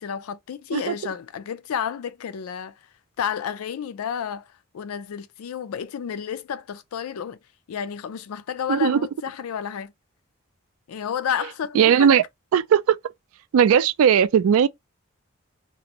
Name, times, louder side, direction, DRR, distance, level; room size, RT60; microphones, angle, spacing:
voice 1, 0.0-2.7 3.2-7.4 7.7-9.9 10.9-12.1, left 8 dB, 85° left, 0.4 m, -31 dB
voice 2, 0.7-1.1 8.7-9.0 11.7-12.2 12.5-13.0 13.5-14.7, right 8 dB, 80° right, 0.3 m, -18 dB
2.5 x 2.0 x 2.8 m
head